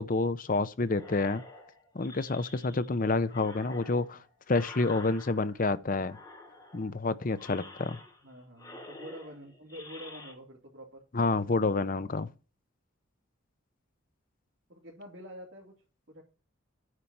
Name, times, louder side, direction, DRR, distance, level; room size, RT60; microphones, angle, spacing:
voice 1, 0.0-1.4 1.9-4.2 4.5-6.2 6.7-8.0 11.1-12.3, left 3 dB, 40° left, 0.6 m, -28 dB
sound 1, 0.9-2.9 3.3-5.7 6.0-6.9 7.3-8.3 8.6-10.3, left 2 dB, 20° left, 2.9 m, -49 dB
voice 2, 8.2-11.0 14.7-15.7 16.1-16.2, equal, 55° right, 3.1 m, -47 dB
9.7 x 4.4 x 7.2 m
head